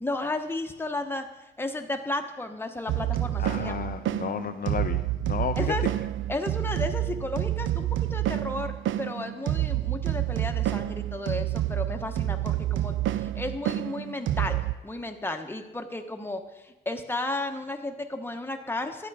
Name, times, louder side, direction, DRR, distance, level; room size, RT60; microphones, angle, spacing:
voice 1, 0.0-3.8 5.6-5.8 6.3-19.1, left 2 dB, 10° left, 5 dB, 1.0 m, -33 dB
sound 1, 2.9-14.7, right 13 dB, 75° right, 0.4 m, -28 dB
voice 2, 3.4-5.7, left 8 dB, 45° left, 8 dB, 0.4 m, -32 dB
11.0 x 9.0 x 4.8 m, 1.1 s
cardioid pair, 115°, 20 cm